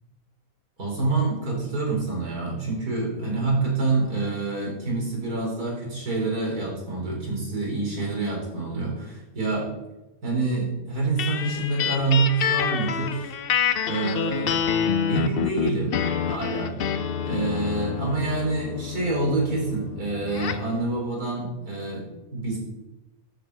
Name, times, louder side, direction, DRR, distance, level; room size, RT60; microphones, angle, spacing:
voice 1, 0.8-9.7 10.2-13.3 13.8-14.6 15.1-16.0 16.2-16.7 17.2-22.6, right 3 dB, 85° right, -2 dB, 5.0 m, -27 dB
sound 1, 11.2-20.7, left 8 dB, 55° left, 0.6 m, -27 dB
13.0 x 7.7 x 5.6 m, 0.97 s
omnidirectional pair, 1.6 m